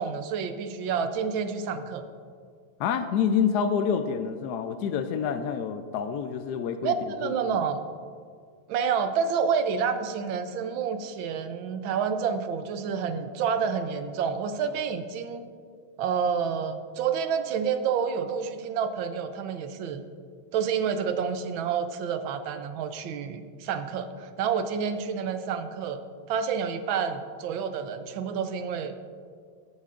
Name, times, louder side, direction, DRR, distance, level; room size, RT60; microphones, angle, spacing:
voice 1, 0.0-2.0 6.8-7.8 8.7-15.5 16.0-20.0 20.5-26.0 26.3-29.0, right 6 dB, 90° right, 9 dB, 1.5 m, -29 dB
voice 2, 2.8-6.9 7.2-7.6, left 7 dB, 75° left, 8 dB, 1.0 m, -27 dB
15.0 x 9.5 x 2.5 m, 2.1 s
omnidirectional pair, 2.1 m